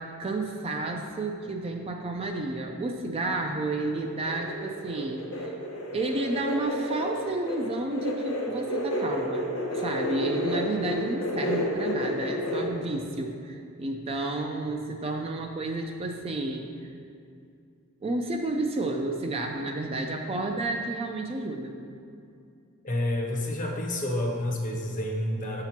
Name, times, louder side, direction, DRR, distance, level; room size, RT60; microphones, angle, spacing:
voice 1, 0.0-5.5 5.9-16.9 18.0-21.8, right 2 dB, 25° right, 3 dB, 0.3 m, -31 dB
sound 1, 3.9-12.7, left 1 dB, 60° left, 1.0 m, -31 dB
voice 2, 22.8-25.6, left 1 dB, 35° left, 1 dB, 0.7 m, -29 dB
6.7 x 2.9 x 5.8 m, 2.4 s
head